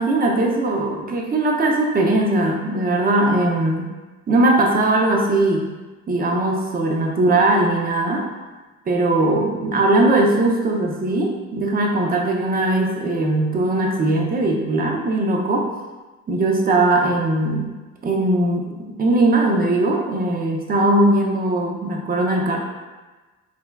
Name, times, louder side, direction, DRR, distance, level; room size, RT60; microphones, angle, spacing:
voice 1, 0.0-3.9 4.3-5.7 6.1-8.3 8.9-15.7 16.3-17.7 18.0-18.7 19.0-22.6, right 2 dB, 30° right, 0 dB, 0.6 m, -19 dB
5.8 x 2.2 x 2.2 m, 1.2 s
cardioid pair, 90°, 30 cm